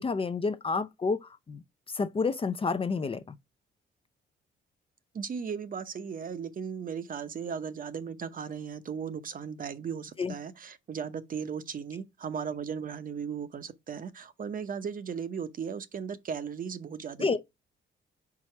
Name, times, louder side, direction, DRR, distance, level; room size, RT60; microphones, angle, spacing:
voice 1, 0.0-1.6 1.9-3.4 10.2-10.3 17.2-17.4, left 4 dB, 30° left, 0.5 m, -29 dB
voice 2, 5.1-17.4, right 7 dB, 45° right, 0.8 m, -36 dB
4.8 x 4.1 x 5.8 m
cardioid pair, 90°, 20 cm